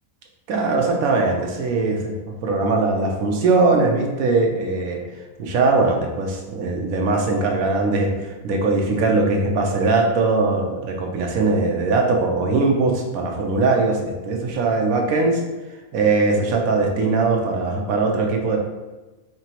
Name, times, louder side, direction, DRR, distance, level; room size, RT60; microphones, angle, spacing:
voice 1, 0.5-2.1 2.4-5.0 5.4-15.4 15.9-18.6, right 3 dB, 85° right, 1 dB, 1.2 m, -20 dB
4.7 x 2.9 x 2.9 m, 1.2 s
omnidirectional pair, 1.4 m